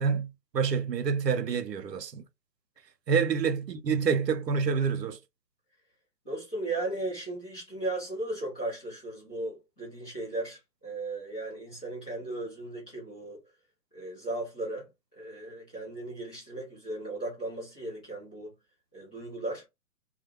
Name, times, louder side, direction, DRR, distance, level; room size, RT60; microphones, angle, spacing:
voice 1, 0.0-2.2 3.1-5.2, right 6 dB, 80° right, 0.7 m, -27 dB
voice 2, 6.2-13.4 13.9-14.9 15.2-18.5 18.9-19.6, right 2 dB, 5° left, 0.5 m, -36 dB
2.3 x 2.2 x 2.8 m
figure-of-eight pair, 130°, 48 cm